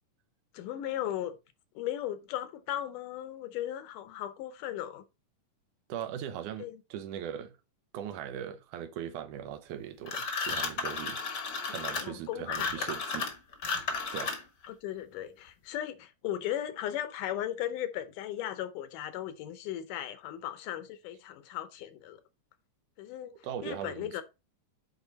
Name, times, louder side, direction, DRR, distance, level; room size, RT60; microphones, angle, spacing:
voice 1, 0.5-1.4 1.8-5.0 6.6-6.8 11.7-12.8 14.7-22.2 23.0-23.3 23.6-24.2, left 11 dB, 80° left, 2.4 m, -37 dB
voice 2, 5.9-7.6 7.9-11.2 11.7-13.3 13.7-13.8 14.1-14.3 23.3-24.2, right 9 dB, 75° right, 2.2 m, -39 dB
sound 1, 10.1-14.7, left 4 dB, 50° left, 1.3 m, -33 dB
8.4 x 4.5 x 4.0 m
omnidirectional pair, 3.7 m